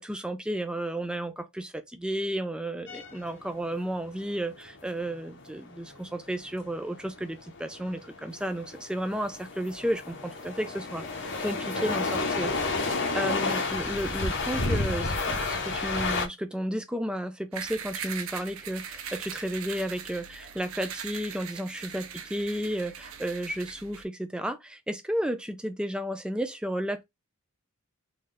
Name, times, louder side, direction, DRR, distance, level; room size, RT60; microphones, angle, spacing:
voice 1, 0.0-27.0, right 1 dB, 5° right, 0.4 m, -33 dB
sound 1, 2.9-16.3, left 3 dB, 55° left, 0.8 m, -31 dB
sound 2, 17.5-24.0, right 7 dB, 75° right, 0.5 m, -40 dB
3.8 x 2.7 x 3.2 m
head